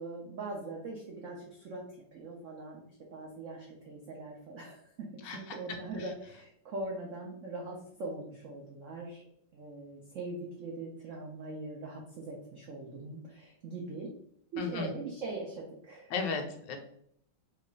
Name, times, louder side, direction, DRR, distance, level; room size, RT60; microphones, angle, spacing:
voice 1, 0.0-2.8 3.1-14.1 14.5-16.1, right 2 dB, 90° right, -1 dB, 0.6 m, -41 dB
voice 2, 5.2-5.6 14.6-14.9 16.1-16.8, left 4 dB, 75° left, 5 dB, 1.2 m, -35 dB
3.2 x 2.4 x 3.7 m, 0.69 s
omnidirectional pair, 2.1 m